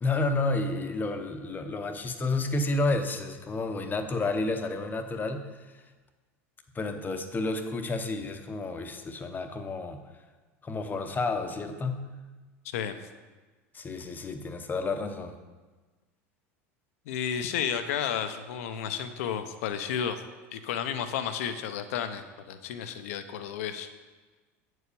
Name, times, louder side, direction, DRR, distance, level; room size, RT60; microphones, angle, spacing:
voice 1, 0.0-5.5 6.7-10.0 10.6-12.1 13.7-15.4, left 3 dB, 25° left, 7 dB, 0.9 m, -30 dB
voice 2, 17.1-20.2 20.5-23.9, left 8 dB, 75° left, 9 dB, 0.7 m, -32 dB
8.0 x 4.8 x 6.8 m, 1.3 s
hypercardioid pair, 95°, 8 cm